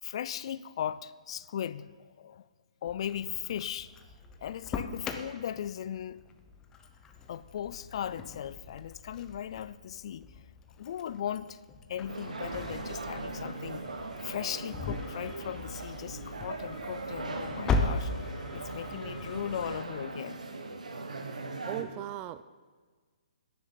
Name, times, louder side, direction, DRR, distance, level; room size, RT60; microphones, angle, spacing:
voice 1, 0.0-2.5 2.8-3.9 4.4-6.2 7.3-10.3 10.8-13.9 14.2-18.1 18.5-20.4, left 9 dB, 50° left, 17 dB, 0.4 m, -38 dB
Engine starting, 2.9-19.8, left 3 dB, 15° left, 0.8 m, -39 dB
sound 1, 12.1-21.8, right 3 dB, 85° right, 1.5 m, -39 dB
voice 2, 21.7-22.4, right 13 dB, 20° right, 15 dB, 0.4 m, -37 dB
10.5 x 7.2 x 8.8 m, 1.5 s
hypercardioid pair, 150°, 4 cm